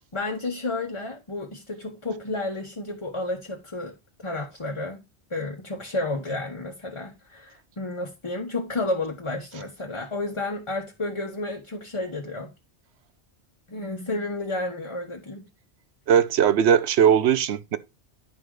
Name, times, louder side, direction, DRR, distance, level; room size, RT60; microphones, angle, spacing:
voice 1, 0.1-3.9 4.2-5.0 5.3-12.5 13.7-15.4, left 2 dB, 25° left, 1.1 m, -31 dB
voice 2, 16.1-17.8, right 8 dB, 75° right, 1.0 m, -19 dB
10.5 x 4.1 x 4.8 m
omnidirectional pair, 1.2 m